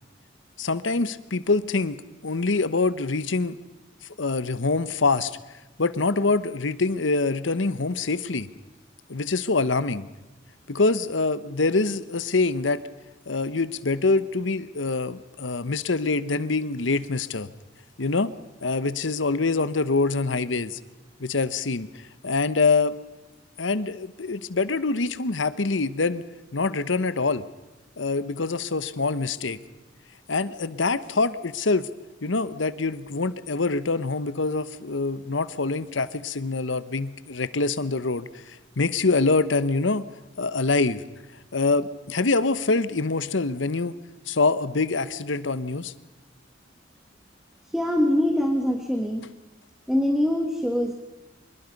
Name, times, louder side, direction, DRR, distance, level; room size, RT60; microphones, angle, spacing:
voice 1, 0.6-3.6 4.2-5.4 5.8-8.5 9.1-10.1 10.7-12.8 13.3-17.5 18.0-18.3 18.6-20.8 21.2-21.9 22.2-23.0 23.6-26.2 26.5-27.4 28.0-29.6 30.3-31.9 32.2-40.1 40.4-41.0 41.5-43.9 44.3-45.9, left 3 dB, 90° left, 15 dB, 1.1 m, -25 dB
voice 2, 47.6-49.3 49.9-50.9, left 1 dB, ahead, 4 dB, 1.7 m, -23 dB
25.5 x 21.5 x 5.4 m, 1.1 s
head